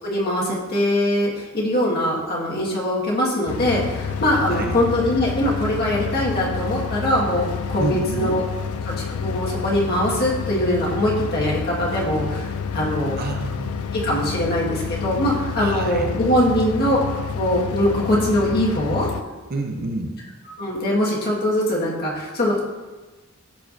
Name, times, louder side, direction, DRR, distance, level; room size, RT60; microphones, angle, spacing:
voice 1, 0.0-8.4 8.8-13.2 13.9-19.1 20.6-22.6, left 1 dB, 50° left, -4 dB, 1.7 m, -22 dB
sound 1, 3.5-19.2, left 6 dB, 85° left, 0.4 m, -29 dB
voice 2, 7.8-8.4 13.2-13.9 15.6-16.1 19.5-20.1, right 2 dB, 45° right, 4 dB, 0.6 m, -28 dB
12.5 x 4.5 x 2.6 m, 1.2 s
head